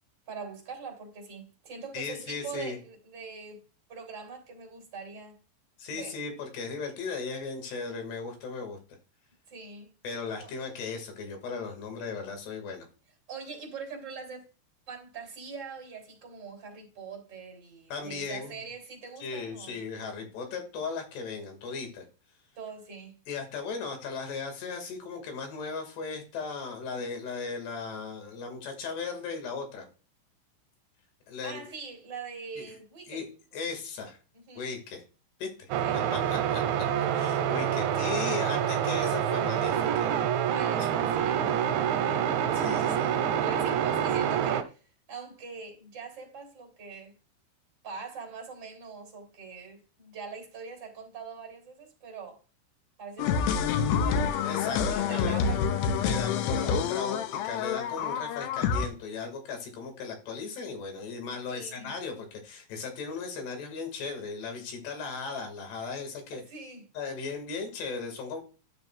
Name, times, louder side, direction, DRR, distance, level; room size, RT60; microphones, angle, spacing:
voice 1, 0.3-3.6 3.9-5.4 5.9-6.1 9.5-9.9 10.4-10.5 13.3-14.5 14.9-19.8 22.5-23.2 31.4-33.2 34.3-34.6 35.8-36.0 40.5-42.3 42.6-43.1 43.4-47.1 47.8-52.4 53.0-54.3 54.8-55.6 61.5-61.9 66.3-66.9, right 5 dB, 25° right, 3.1 m, -43 dB
voice 2, 1.9-2.8 5.8-8.8 10.0-12.9 17.9-18.6 19.2-22.1 23.3-29.9 31.3-31.6 32.6-32.7 33.1-33.3 33.5-34.2 34.6-35.0 35.4-35.7 36.1-36.6 37.2-40.3 41.5-41.8 42.5-43.1 54.4-55.4 56.0-66.4 67.0-68.4, left 4 dB, 60° left, 4.0 m, -37 dB
sound 1, 35.7-44.6, right 9 dB, 80° right, 3.0 m, -27 dB
sound 2, 53.2-58.9, left 6 dB, 85° left, 2.5 m, -27 dB
12.5 x 6.8 x 2.4 m
omnidirectional pair, 5.6 m